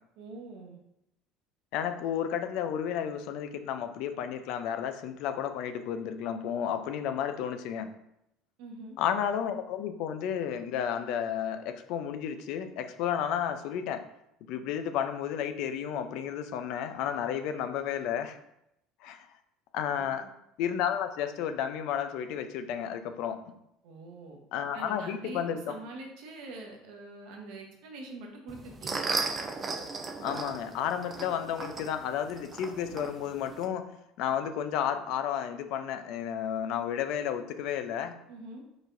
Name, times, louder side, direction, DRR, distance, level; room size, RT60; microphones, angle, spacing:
voice 1, 0.2-0.8 8.6-8.9 20.0-20.3 23.8-24.4 24.7-29.0 38.3-38.6, right 2 dB, 75° right, 1 dB, 1.1 m, -44 dB
voice 2, 1.7-7.9 9.0-14.0 14.5-18.4 19.0-19.3 19.7-20.2 20.6-23.5 24.5-25.6 30.2-33.9 34.2-38.2, left 9 dB, 70° left, 9 dB, 0.5 m, -32 dB
sound 1, 28.5-33.7, right 4 dB, 30° right, 0.6 m, -36 dB
4.8 x 4.1 x 2.6 m, 0.82 s
supercardioid pair, 95°, 0 cm